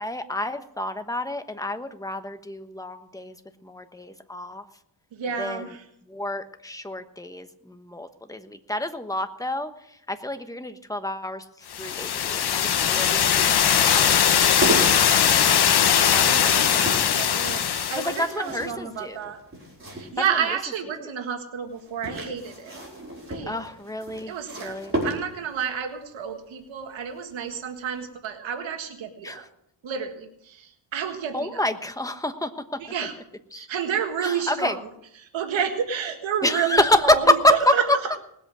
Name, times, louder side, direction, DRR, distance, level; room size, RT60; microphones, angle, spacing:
voice 1, 0.0-3.3 3.6-4.6 5.4-5.7 6.1-9.7 10.1-11.4 11.8-15.5 16.1-16.7 17.9-19.3 20.5-20.6 23.5-24.9 29.2-29.5 31.3-32.5 33.5-33.7 34.2-34.8 36.4-38.0, left 1 dB, 10° left, 8 dB, 1.1 m, -27 dB
voice 2, 5.1-5.8 16.3-19.4 19.9-22.8 23.3-23.5 24.3-29.4 29.8-31.6 32.8-33.1 33.5-34.8 35.2-38.2, right 7 dB, 85° right, 5 dB, 1.8 m, -30 dB
sound 1, 11.7-18.3, left 9 dB, 60° left, 1.1 m, -20 dB
sound 2, 11.7-20.6 21.7-25.6 27.2-27.5 27.8-27.9, right 1 dB, 25° right, 4.8 m, -35 dB
19.5 x 8.3 x 6.2 m, 0.76 s
cardioid pair, 100°, 45 cm